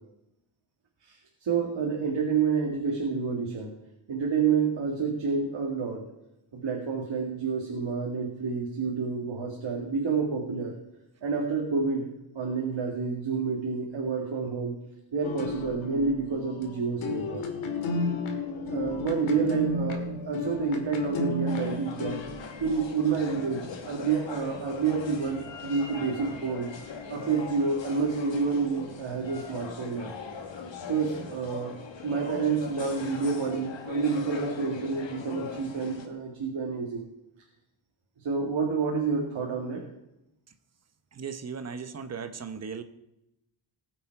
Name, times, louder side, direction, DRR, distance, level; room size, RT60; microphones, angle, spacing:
voice 1, 1.0-3.7 4.1-6.0 6.5-10.7 11.2-12.1 12.3-14.7 15.1-17.5 18.6-22.2 22.6-26.7 27.1-30.1 30.8-31.8 32.0-37.0 38.2-39.8, right 5 dB, 65° right, -1 dB, 2.2 m, -29 dB
sound 1, 15.2-22.9, left 3 dB, 80° left, 2.0 m, -33 dB
sound 2, 21.5-36.1, left 5 dB, 65° left, 1.6 m, -41 dB
voice 2, 41.1-42.8, right 6 dB, 35° right, 9 dB, 0.9 m, -37 dB
19.5 x 7.4 x 4.7 m, 0.88 s
wide cardioid pair, 175°, 48 cm